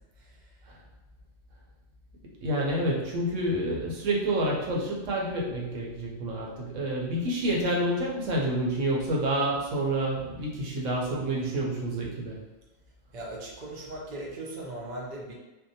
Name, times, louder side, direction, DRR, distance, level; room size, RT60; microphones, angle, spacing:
voice 1, 0.2-0.5 13.1-15.3, right 1 dB, 55° right, -3 dB, 0.5 m, -39 dB
voice 2, 2.4-12.4, right 1 dB, 75° right, -2 dB, 1.0 m, -28 dB
2.7 x 2.0 x 2.6 m, 1.1 s
omnidirectional pair, 1.3 m